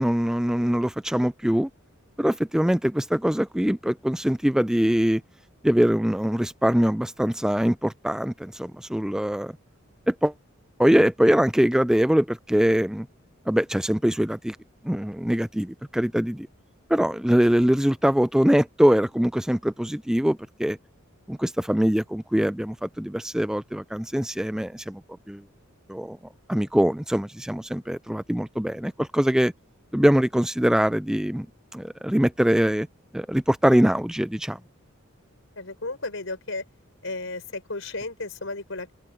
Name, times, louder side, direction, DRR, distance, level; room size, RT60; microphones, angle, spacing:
voice 1, 0.0-1.7 2.2-5.2 5.6-9.5 10.1-10.3 10.8-13.1 13.5-14.6 14.8-16.5 16.9-20.8 21.3-25.0 25.3-25.4 25.9-26.2 26.5-29.5 29.9-31.5 31.7-32.9 33.1-34.6, equal, 5° right, 0.4 m, -23 dB
voice 2, 35.5-36.7 37.0-38.9, left 2 dB, 70° left, 5.1 m, -33 dB
head